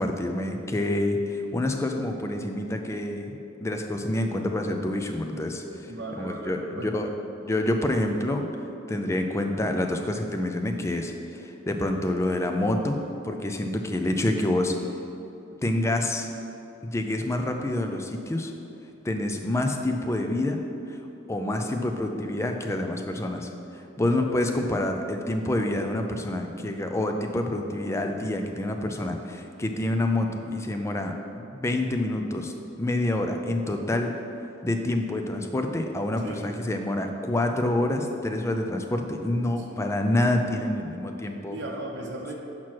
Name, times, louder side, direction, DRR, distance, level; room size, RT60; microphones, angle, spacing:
voice 1, 0.0-7.1 7.4-8.5 8.9-13.0 13.2-14.9 15.6-16.3 16.8-18.5 19.0-20.6 20.9-21.0 21.3-31.1 31.5-32.5 32.8-34.1 34.6-41.6, left 1 dB, 15° left, 4 dB, 0.4 m, -27 dB
voice 2, 5.9-7.1 24.0-24.5 36.2-36.5 39.6-39.8 40.6-40.8 41.5-42.4, right 1 dB, 60° right, -1 dB, 0.9 m, -37 dB
5.9 x 4.6 x 6.0 m, 2.8 s
head